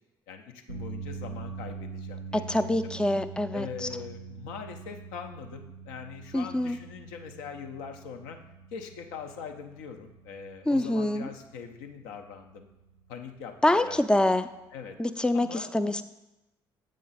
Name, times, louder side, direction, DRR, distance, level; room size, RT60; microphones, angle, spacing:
voice 1, 0.3-2.9 3.5-8.4 8.7-12.7 13.1-14.3 14.7-15.0 15.3-15.7, left 6 dB, 70° left, 5 dB, 0.6 m, -42 dB
sound 1, 0.7-15.0, right 5 dB, 85° right, 0.4 m, -44 dB
voice 2, 2.3-3.9 6.3-6.8 10.7-11.3 13.6-14.5 15.0-16.0, left 1 dB, 5° left, 12 dB, 0.4 m, -25 dB
7.5 x 5.1 x 4.0 m, 0.97 s
figure-of-eight pair, 45°, 12 cm